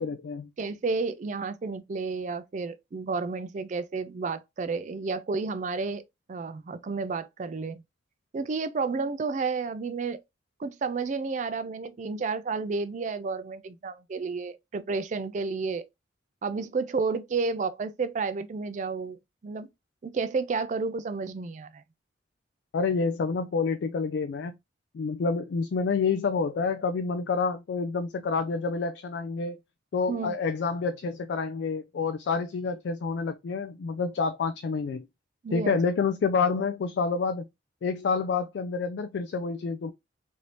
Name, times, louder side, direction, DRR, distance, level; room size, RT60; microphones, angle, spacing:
voice 1, 0.0-0.5 22.7-24.5 24.9-29.6 29.9-35.1 35.5-37.5 37.8-39.9, left 5 dB, 65° left, 0.3 m, -28 dB
voice 2, 0.6-6.0 6.3-7.8 8.3-10.2 10.6-15.8 16.4-19.7 20.0-21.8 30.1-30.4 35.4-35.8, right 4 dB, 40° right, 0.3 m, -31 dB
3.2 x 2.6 x 2.9 m
head